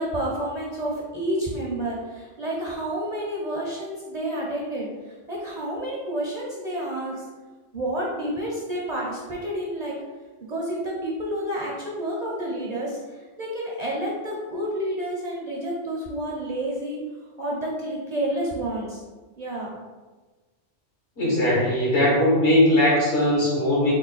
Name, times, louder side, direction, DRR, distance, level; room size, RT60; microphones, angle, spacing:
voice 1, 0.0-7.3 7.7-9.9 10.5-17.0 17.4-19.0 19.4-19.7, right 1 dB, 45° right, -4 dB, 0.6 m, -29 dB
voice 2, 21.2-23.9, left 1 dB, 70° left, -4 dB, 1.4 m, -19 dB
3.8 x 2.2 x 4.0 m, 1.3 s
omnidirectional pair, 1.2 m